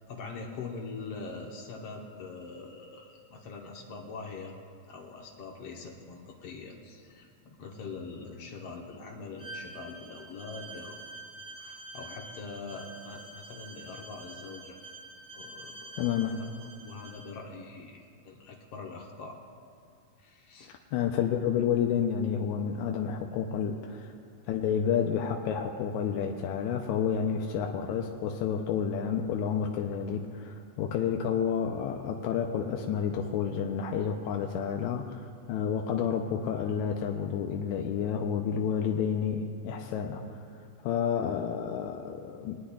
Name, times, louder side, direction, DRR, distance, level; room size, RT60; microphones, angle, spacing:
voice 1, 0.1-4.5 4.9-11.1 11.6-14.8 15.3-16.5 16.8-19.4 20.2-20.7, left 4 dB, 65° left, 1 dB, 1.8 m, -43 dB
Bowed string instrument, 9.4-17.3, right 2 dB, 45° right, 1.1 m, -47 dB
voice 2, 16.0-16.4 20.9-24.1 24.5-40.2 40.8-42.6, left 7 dB, 80° left, 2 dB, 1.9 m, -30 dB
22.0 x 9.9 x 2.3 m, 2.4 s
omnidirectional pair, 3.4 m